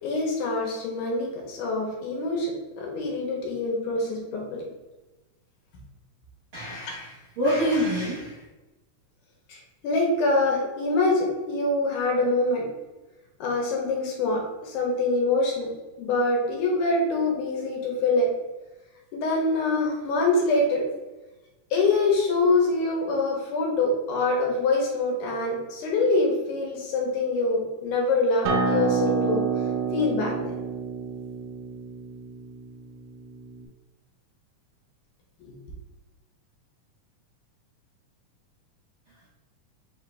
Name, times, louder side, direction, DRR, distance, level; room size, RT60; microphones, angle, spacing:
voice 1, 0.0-2.5 2.8-4.7 9.5-12.7 13.4-15.7 16.0-18.3 19.1-20.8 21.7-29.4 29.9-30.5, left 2 dB, 80° left, -1 dB, 2.4 m, -25 dB
voice 2, 6.5-8.4, equal, 65° right, -9 dB, 1.2 m, -26 dB
Acoustic guitar, 28.5-33.7, right 5 dB, 80° right, 1.7 m, -28 dB
5.2 x 2.6 x 3.3 m, 1.1 s
omnidirectional pair, 3.7 m